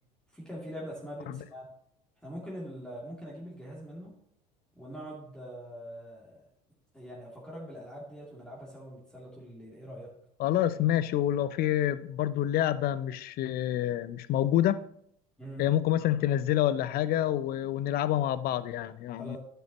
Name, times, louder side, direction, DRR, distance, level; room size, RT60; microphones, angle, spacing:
voice 1, 0.3-1.7 2.2-4.1 4.8-6.4 6.9-10.1 15.4-15.7 19.2-19.4, equal, 5° left, -5 dB, 2.7 m, -43 dB
voice 2, 10.4-14.8 15.6-19.4, left 12 dB, 50° left, 16 dB, 0.5 m, -27 dB
10.0 x 6.8 x 3.0 m, 0.71 s
hypercardioid pair, 75°, 21 cm